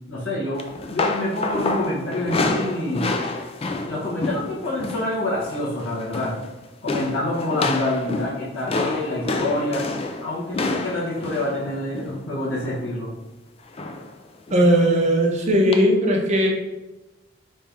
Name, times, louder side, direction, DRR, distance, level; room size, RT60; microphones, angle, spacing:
voice 1, 0.1-3.1 3.8-6.3 6.8-9.8 10.2-13.1, left 1 dB, 85° left, -7 dB, 1.2 m, -27 dB
sound 1, 0.6-5.1 5.4-5.7 6.0-6.5 6.9-12.9 13.8-14.1 14.5-14.7 15.7-15.8, left 3 dB, 30° left, 0.4 m, -28 dB
voice 2, 14.5-16.5, equal, 35° right, 0 dB, 0.8 m, -18 dB
4.3 x 3.4 x 3.5 m, 1.1 s
head